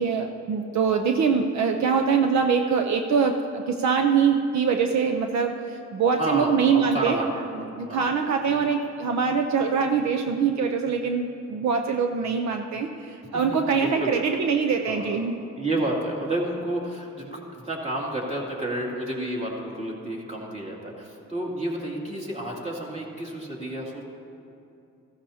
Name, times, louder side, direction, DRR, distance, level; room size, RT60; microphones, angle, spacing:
voice 1, 0.0-7.2 7.7-15.4, right 6 dB, 65° right, 4 dB, 0.7 m, -23 dB
voice 2, 6.2-8.1 8.4-8.7 13.8-14.1 14.8-15.2 15.6-24.0, right 1 dB, 20° right, -3 dB, 2.6 m, -31 dB
15.5 x 13.0 x 2.8 m, 2.7 s
cardioid pair, 90°, 30 cm